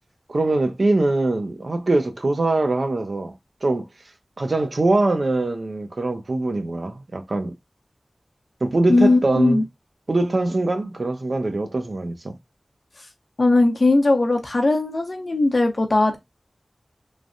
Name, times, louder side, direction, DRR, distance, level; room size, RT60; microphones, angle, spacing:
voice 1, 0.3-3.3 3.6-3.9 4.4-7.5 8.6-9.6 10.1-12.3, right 2 dB, 60° right, 0.7 m, -22 dB
voice 2, 8.9-9.6 13.4-16.2, left 2 dB, 55° left, 0.8 m, -18 dB
3.2 x 2.1 x 2.5 m
wide cardioid pair, 65°, 0 cm